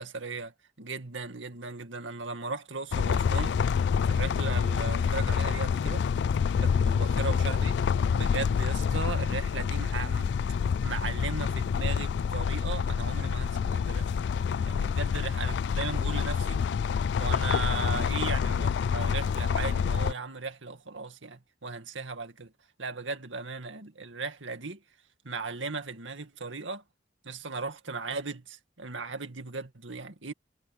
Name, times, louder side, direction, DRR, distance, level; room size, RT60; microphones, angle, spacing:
voice 1, 0.0-3.6 4.1-6.0 6.6-7.7 8.1-10.3 10.8-14.3 14.7-16.6 17.2-22.5 22.8-24.8 25.2-26.8 27.2-30.3, right 4 dB, 90° right, 2.2 m, -37 dB
sound 1, 2.9-20.1, left 6 dB, 65° left, 0.3 m, -27 dB
head